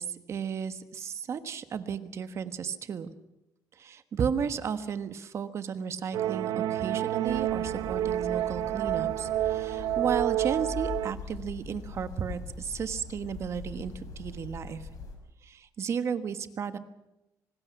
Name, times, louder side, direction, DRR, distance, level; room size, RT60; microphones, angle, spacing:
voice 1, 0.0-3.1 3.8-14.8 15.4-16.8, right 7 dB, 45° right, 11 dB, 1.4 m, -34 dB
sound 1, 6.1-11.1, right 13 dB, 90° right, 1.0 m, -29 dB
sound 2, 7.3-15.2, left 4 dB, 60° left, 5.8 m, -42 dB
25.5 x 19.5 x 6.0 m, 0.94 s
cardioid pair, 145°, 7 cm